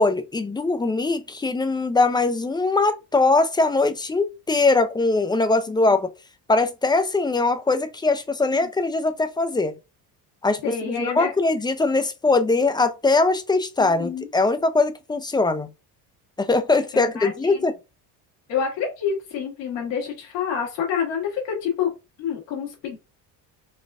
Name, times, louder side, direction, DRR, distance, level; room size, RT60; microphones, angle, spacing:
voice 1, 0.0-6.1 6.5-9.7 10.4-10.6 10.9-15.7 16.4-17.7, left 3 dB, 10° left, 0.3 m, -21 dB
voice 2, 10.6-11.3 13.8-14.3 16.9-17.7 18.5-21.9 22.2-23.0, left 7 dB, 90° left, 1.6 m, -28 dB
4.0 x 2.4 x 2.4 m
cardioid pair, 100°, 42 cm